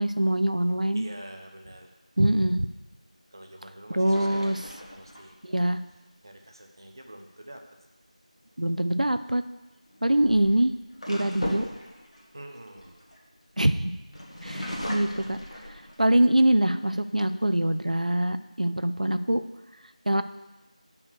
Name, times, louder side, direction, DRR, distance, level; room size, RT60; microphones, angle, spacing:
voice 1, 0.0-1.1 2.2-2.7 3.9-4.6 5.4-5.8 8.6-9.4 10.0-10.7 11.1-11.7 13.6-13.9 14.4-15.4 16.0-19.4 20.1-20.2, right 1 dB, 75° right, 11 dB, 0.6 m, -23 dB
voice 2, 0.9-1.9 3.3-4.6 4.9-5.4 6.2-7.6 12.3-13.0, right 1 dB, 35° right, 3 dB, 0.8 m, -46 dB
sound 1, 4.0-5.6 8.6-8.9 9.9-13.6 14.1-16.3 16.8-16.9 17.2-17.8, equal, 55° left, 1.8 m, -38 dB
7.0 x 5.4 x 6.3 m, 1.1 s
figure-of-eight pair, 175°, 4 cm